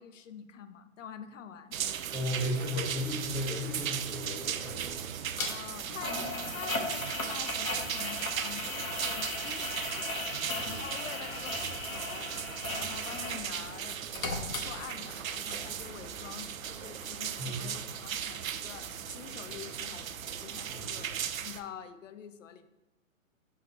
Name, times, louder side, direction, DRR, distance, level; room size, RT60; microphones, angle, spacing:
voice 1, 0.0-1.8 5.5-12.3 12.7-21.1 21.4-22.7, left 8 dB, 65° left, 11 dB, 0.7 m, -46 dB
sound 1, 1.7-21.6, right 9 dB, 80° right, 0.5 m, -37 dB
voice 2, 2.1-5.0 10.6-10.8 17.4-17.7 20.7-21.1, left 1 dB, ahead, -8 dB, 0.4 m, -35 dB
sound 2, 2.8-21.3, right 3 dB, 30° right, 1.0 m, -51 dB
sound 3, 5.4-5.5 6.0-13.5 13.8-15.2 15.5-15.6, left 2 dB, 85° left, 1.3 m, -37 dB
6.3 x 3.4 x 4.5 m, 1.1 s
hypercardioid pair, 130°, 40 cm